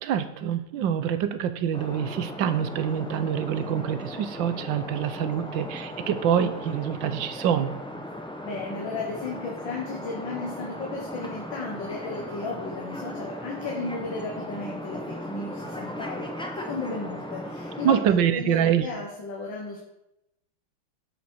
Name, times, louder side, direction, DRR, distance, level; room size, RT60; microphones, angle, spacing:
voice 1, 0.0-7.7 17.8-18.9, right 9 dB, 70° right, 11 dB, 1.5 m, -25 dB
sound 1, 1.7-18.0, equal, 5° left, 0.7 m, -37 dB
voice 2, 8.4-18.0 18.3-19.8, left 3 dB, 70° left, -1 dB, 2.2 m, -34 dB
11.0 x 8.3 x 4.6 m, 0.87 s
omnidirectional pair, 2.2 m